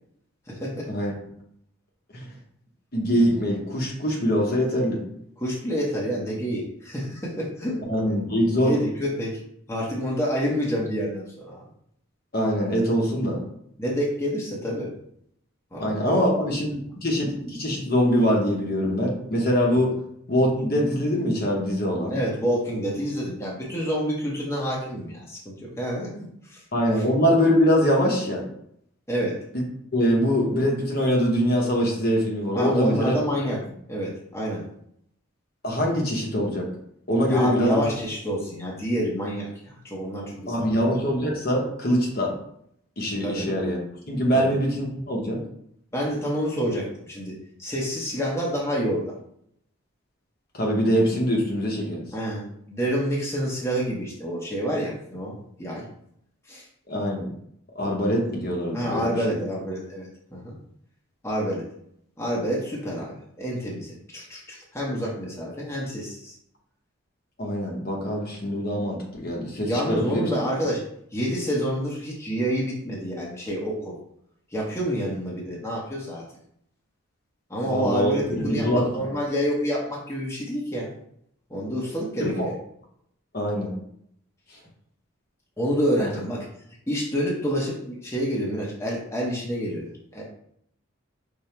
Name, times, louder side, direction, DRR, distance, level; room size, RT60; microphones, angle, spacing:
voice 1, 0.5-0.9 5.4-7.8 8.7-9.4 9.7-11.6 13.8-14.9 15.7-16.2 16.5-16.6 19.7-19.8 22.1-26.6 27.0-27.1 29.1-29.4 32.5-33.6 33.9-34.6 37.3-40.7 43.2-43.5 44.3-44.5 45.9-49.1 52.1-55.9 56.5-56.7 58.7-60.6 61.2-61.7 62.2-66.4 69.7-70.8 71.1-73.9 74.5-76.2 77.5-80.9 81.5-82.5 85.6-86.5 86.9-90.2, equal, 15° left, -4 dB, 0.9 m, -28 dB
voice 2, 2.9-5.0 7.9-8.7 12.3-13.4 15.8-19.9 20.3-22.2 26.7-28.5 29.9-33.2 35.6-36.7 37.1-37.8 40.5-42.3 43.0-43.8 44.1-45.4 50.5-52.0 56.9-57.3 57.7-59.4 67.4-70.2 77.6-79.0 82.2-82.5 83.3-83.7 86.0-86.1, equal, 45° left, -1 dB, 0.9 m, -23 dB
5.4 x 2.1 x 4.4 m, 0.70 s
head